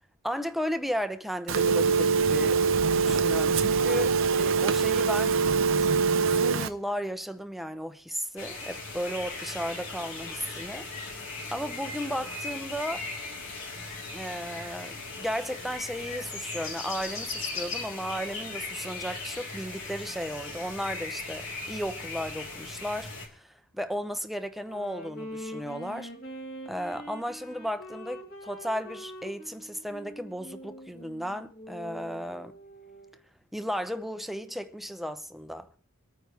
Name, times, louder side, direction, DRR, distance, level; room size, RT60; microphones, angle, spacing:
voice 1, 0.2-2.6 2.9-5.4 5.8-10.9 11.5-13.1 14.1-26.1 26.7-32.5 33.5-35.7, equal, ahead, 0.8 m, -35 dB
Telephone, 1.5-6.7, right 5 dB, 65° right, 0.7 m, -23 dB
sound 1, 8.4-23.3, left 3 dB, 70° left, 3.8 m, -38 dB
Wind instrument woodwind instrument, 24.5-33.2, equal, 50° left, 3.3 m, -44 dB
24.5 x 9.3 x 3.4 m
head